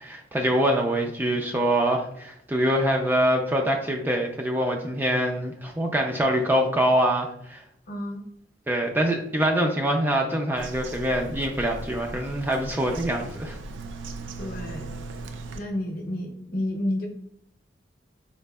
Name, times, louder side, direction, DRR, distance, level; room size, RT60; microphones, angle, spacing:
voice 1, 0.0-7.6 8.7-13.6, right 1 dB, 10° right, 1 dB, 0.3 m, -24 dB
voice 2, 7.9-8.2 14.4-15.0 15.5-17.1, left 1 dB, 50° left, 2 dB, 0.7 m, -30 dB
Bird vocalization bird call bird song, 10.6-15.6, right 2 dB, 90° right, 0.4 m, -38 dB
4.1 x 2.7 x 2.2 m, 0.75 s
head